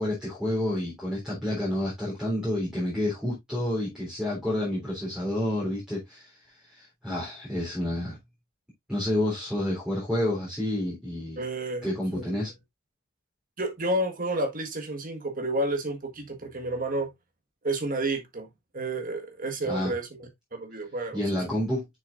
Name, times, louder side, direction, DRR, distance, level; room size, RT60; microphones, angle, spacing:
voice 1, 0.0-6.4 6.6-8.2 8.9-11.4 11.8-12.5 19.7-19.9 21.1-21.9, left 1 dB, 5° right, 3.6 m, -29 dB
voice 2, 11.4-11.9 12.1-12.2 13.6-17.1 17.6-18.5 18.7-21.6, right 2 dB, 40° right, 1.6 m, -30 dB
7.1 x 6.5 x 2.5 m
head